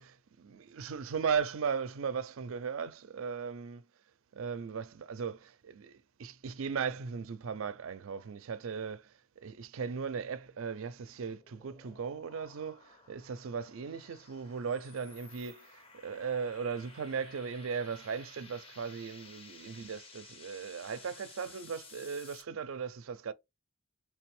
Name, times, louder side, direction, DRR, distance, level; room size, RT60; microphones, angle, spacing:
voice 1, 0.0-3.8 4.3-9.1 9.4-23.3, right 6 dB, 75° right, 0.4 m, -37 dB
sound 1, 10.6-22.4, left 4 dB, 25° left, 0.6 m, -55 dB
3.4 x 3.3 x 3.2 m
head